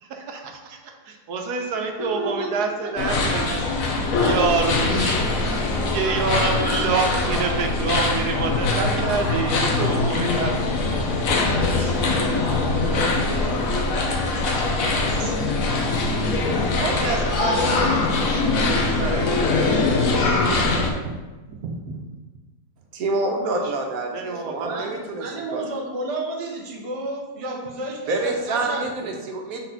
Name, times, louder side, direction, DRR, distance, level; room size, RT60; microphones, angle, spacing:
voice 1, 0.0-10.8 12.2-12.9 16.8-19.3 21.0-21.2 21.5-22.0 23.4-23.7 24.1-24.8, right 4 dB, 90° right, 3 dB, 1.3 m, -28 dB
voice 2, 2.0-3.1 5.0-6.2 11.4-14.4 14.7-15.3 24.6-29.2, right 2 dB, 30° right, 0 dB, 0.7 m, -33 dB
sound 1, 3.0-20.9, left 3 dB, 65° left, 1.2 m, -22 dB
voice 3, 22.9-25.2 25.5-25.6 28.1-29.6, right 2 dB, 70° right, 2 dB, 1.3 m, -27 dB
4.3 x 4.1 x 5.7 m, 1.2 s
omnidirectional pair, 1.6 m